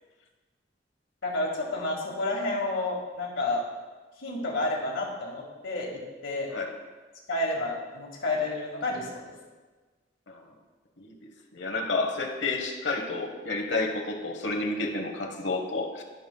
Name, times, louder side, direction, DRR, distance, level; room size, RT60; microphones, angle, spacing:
voice 1, 1.2-3.6 4.2-5.9 6.2-6.5 7.3-9.3, left 2 dB, 90° left, -2 dB, 1.8 m, -30 dB
voice 2, 11.5-16.0, left 3 dB, 65° left, 3 dB, 1.0 m, -30 dB
14.0 x 5.3 x 2.3 m, 1.3 s
head